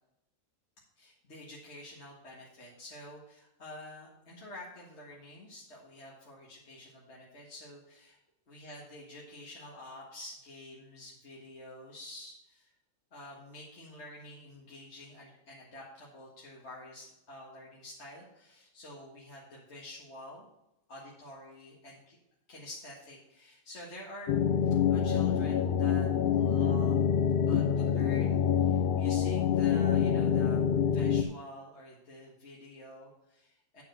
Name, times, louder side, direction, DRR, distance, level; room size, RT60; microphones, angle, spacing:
voice 1, 1.0-8.2 8.5-12.7 13.1-20.5 20.9-22.2 22.5-27.0 27.5-30.7 30.9-33.8, left 1 dB, 55° left, -4 dB, 1.9 m, -48 dB
sound 1, 24.3-31.2, left 8 dB, 80° left, 0.4 m, -26 dB
9.5 x 4.6 x 6.4 m, 0.85 s
omnidirectional pair, 1.4 m